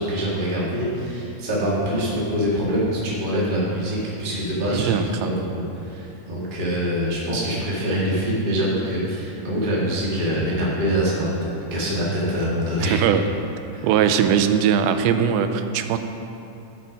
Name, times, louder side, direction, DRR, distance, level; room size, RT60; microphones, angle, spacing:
voice 1, 0.0-13.0 13.7-13.9, equal, 30° right, -6 dB, 0.9 m, -24 dB
voice 2, 4.7-5.3 12.8-13.3 13.8-16.0, right 8 dB, 90° right, 9 dB, 2.4 m, -20 dB
12.5 x 5.8 x 5.1 m, 2.9 s
omnidirectional pair, 4.2 m